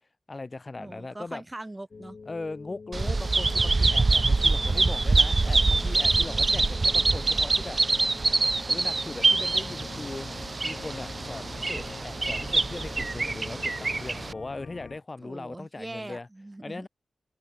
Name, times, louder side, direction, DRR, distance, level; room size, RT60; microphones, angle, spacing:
voice 1, 0.3-1.4 2.3-7.8 8.7-10.3 10.6-16.3 16.6-16.9, left 3 dB, 30° left, 1.3 m, -39 dB
voice 2, 0.8-2.2 15.2-16.9, right 2 dB, 20° right, 2.4 m, -41 dB
sound 1, 1.9-14.0, left 4 dB, 50° left, 1.0 m, -46 dB
Bird vocalization bird call bird song, 2.9-14.3, right 3 dB, 35° right, 0.5 m, -25 dB
Organ, 9.2-15.0, left 6 dB, 85° left, 0.7 m, -46 dB
open air
wide cardioid pair, 140°, 0 cm